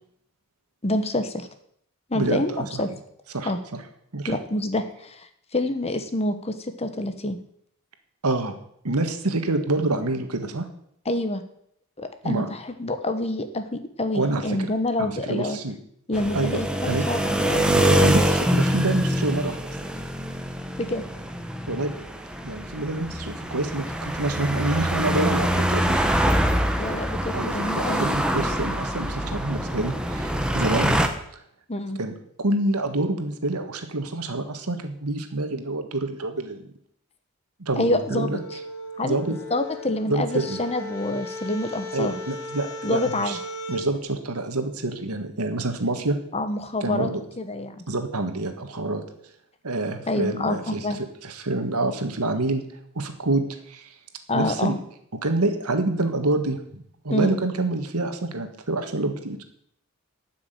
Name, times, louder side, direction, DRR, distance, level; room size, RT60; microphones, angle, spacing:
voice 1, 0.8-1.5 2.1-2.9 3.4-3.6 4.3-7.4 11.0-11.4 12.0-15.6 16.1-17.7 20.8-21.0 26.8-28.1 31.7-32.0 37.8-38.4 39.0-42.2 42.8-43.4 46.3-47.1 47.4-47.8 50.1-51.0 54.3-54.8 57.1-57.4, left 1 dB, 30° left, 9 dB, 1.1 m, -27 dB
voice 2, 2.1-2.8 3.3-3.8 4.1-4.4 8.2-8.5 8.8-10.7 12.2-12.5 14.1-14.7 15.0-15.7 16.3-17.0 17.7-19.6 21.7-21.9 22.4-26.0 27.3-30.9 31.3-31.4 32.0-36.6 37.6-38.4 39.0-39.3 40.1-40.6 41.9-43.4 43.7-46.2 46.8-47.2 47.9-49.0 49.6-52.6 52.9-53.9 54.3-54.8 55.2-59.4, right 2 dB, 85° right, 7 dB, 1.7 m, -27 dB
sound 1, 16.1-31.1, equal, 5° right, 1.0 m, -25 dB
sound 2, 37.7-43.9, left 1 dB, 70° left, 1.7 m, -37 dB
12.0 x 6.2 x 9.1 m, 0.70 s
head